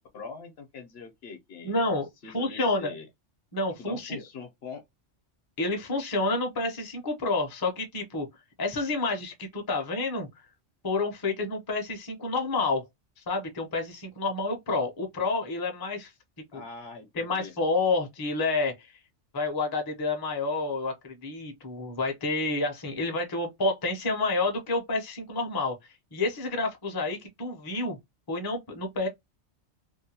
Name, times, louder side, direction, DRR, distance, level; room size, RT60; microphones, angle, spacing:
voice 1, 0.1-1.8 2.2-3.1 3.8-4.8 16.5-17.5, left 4 dB, 60° left, 0.9 m, -43 dB
voice 2, 1.6-2.9 3.5-4.2 5.6-8.3 8.6-10.3 10.8-12.8 13.3-16.1 16.5-16.6 17.2-18.9 19.3-25.7 26.1-28.0 28.3-29.1, left 3 dB, 25° left, 0.5 m, -29 dB
2.7 x 2.2 x 2.7 m
omnidirectional pair, 1.2 m